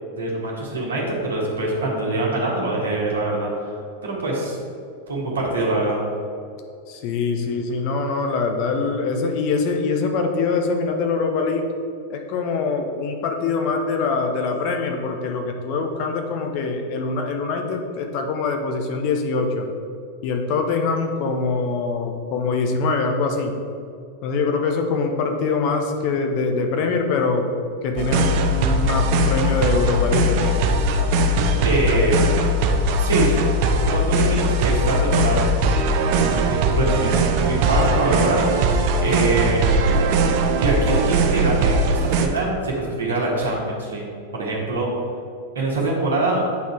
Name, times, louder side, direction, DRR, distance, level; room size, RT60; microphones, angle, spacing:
voice 1, 0.2-3.7 4.0-4.6 5.1-6.0 31.6-32.3 33.0-33.3 33.9-35.5 36.0-39.7 40.6-44.0 44.3-44.9 45.5-46.4, right 2 dB, 65° right, -3 dB, 1.6 m, -24 dB
voice 2, 6.9-11.7 12.1-19.7 20.2-23.5 24.2-27.5 27.8-30.6, left 4 dB, 45° left, 4 dB, 0.9 m, -23 dB
sound 1, 28.0-42.3, right 1 dB, 45° right, 0.6 m, -20 dB
8.4 x 4.0 x 4.7 m, 2.4 s
figure-of-eight pair, 90°, 0 cm